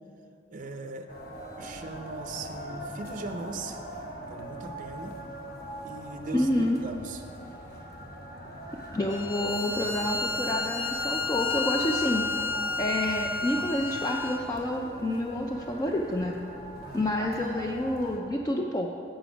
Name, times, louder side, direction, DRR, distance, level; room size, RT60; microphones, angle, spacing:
voice 1, 0.5-1.1 1.6-3.8 4.3-5.2 5.8-7.2 16.8-17.1, right 2 dB, 45° right, 4 dB, 0.5 m, -39 dB
sound 1, 1.1-18.2, equal, 50° left, 1.2 m, -42 dB
voice 2, 6.3-6.8 8.9-12.2 12.8-16.3 16.9-18.9, left 1 dB, 20° left, 1 dB, 0.4 m, -28 dB
Bowed string instrument, 9.1-14.5, left 3 dB, 80° left, 0.7 m, -31 dB
7.5 x 7.1 x 5.0 m, 2.6 s
head